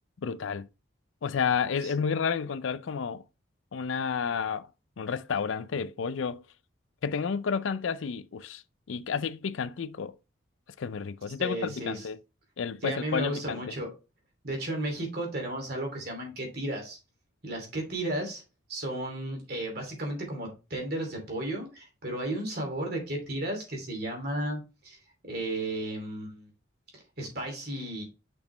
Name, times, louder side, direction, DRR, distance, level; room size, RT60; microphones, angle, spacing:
voice 1, 0.2-0.7 1.2-3.2 3.7-4.7 5.0-6.4 7.0-8.6 8.9-10.1 10.8-12.2 12.6-13.6, left 6 dB, 80° left, 0.4 m, -31 dB
voice 2, 11.4-12.1 12.8-13.9 14.4-17.0 17.4-18.4 18.7-25.0 25.3-26.5 26.9-28.0, right 1 dB, 50° right, 2.9 m, -34 dB
6.2 x 5.8 x 3.3 m
head